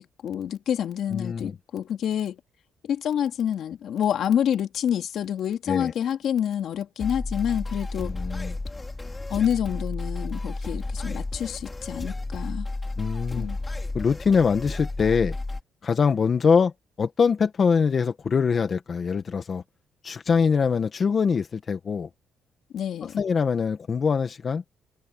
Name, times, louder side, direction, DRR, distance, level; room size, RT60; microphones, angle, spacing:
voice 1, 0.0-2.4 2.8-8.1 9.3-12.7 13.3-13.6 22.7-23.2, left 9 dB, 70° left, 2.6 m, -27 dB
voice 2, 1.1-1.5 5.7-5.9 8.0-8.6 13.0-13.5 13.9-15.4 15.8-16.7 17.0-19.6 20.0-22.1 23.0-24.6, left 5 dB, 45° left, 1.5 m, -23 dB
sound 1, 7.0-15.6, left 2 dB, 20° left, 2.8 m, -32 dB
cardioid pair, 90°, 0 cm